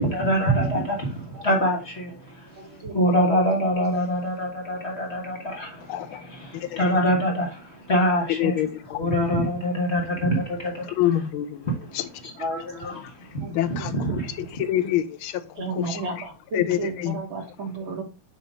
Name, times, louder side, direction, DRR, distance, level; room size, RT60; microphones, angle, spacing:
voice 1, 0.0-8.6 8.9-11.3 11.6-11.8 12.2-14.6, equal, 35° left, 1.4 m, -25 dB
voice 2, 2.6-3.1 13.4-13.5 13.8-13.9 15.6-18.0, right 3 dB, 65° right, 2.3 m, -33 dB
voice 3, 5.9-6.2 6.5-6.8 8.4-9.1 11.0-12.1 12.9-13.1 13.5-15.4 15.8-16.0 16.5-17.2, left 12 dB, 75° left, 1.5 m, -27 dB
7.2 x 3.0 x 5.0 m
omnidirectional pair, 2.4 m